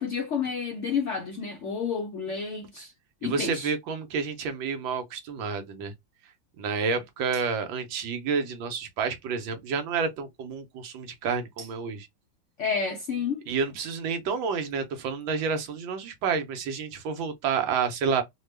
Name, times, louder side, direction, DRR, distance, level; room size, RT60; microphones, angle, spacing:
voice 1, 0.0-2.9 3.2-3.7 12.6-13.5, left 6 dB, 75° left, 0.6 m, -30 dB
voice 2, 3.2-5.9 6.6-12.1 13.5-18.2, right 5 dB, 85° right, 1.5 m, -29 dB
3.5 x 2.2 x 3.2 m
omnidirectional pair, 2.1 m